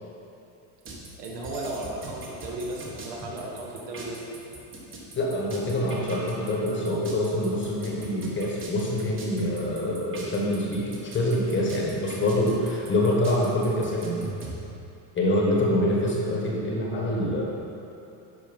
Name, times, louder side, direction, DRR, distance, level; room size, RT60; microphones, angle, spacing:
sound 1, 0.8-14.6, right 3 dB, 25° right, 1.3 m, -40 dB
voice 1, 1.2-4.3, right 2 dB, 65° right, -1 dB, 1.7 m, -35 dB
voice 2, 5.1-14.1 15.1-17.4, left 1 dB, 25° left, -3 dB, 1.4 m, -25 dB
11.0 x 4.7 x 5.3 m, 2.7 s
cardioid pair, 155°, 49 cm